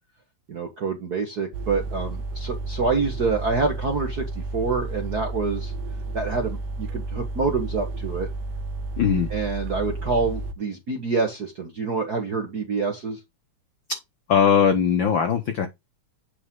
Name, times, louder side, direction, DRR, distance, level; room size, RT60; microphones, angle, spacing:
voice 1, 0.5-5.7 6.1-8.3 9.3-13.2, right 4 dB, 55° right, 1.1 m, -27 dB
sound 1, 1.5-10.5, right 3 dB, 80° right, 2.1 m, -32 dB
voice 2, 9.0-9.3 13.9-14.0 14.3-15.7, left 7 dB, 75° left, 1.1 m, -20 dB
8.5 x 5.3 x 3.7 m
omnidirectional pair, 3.5 m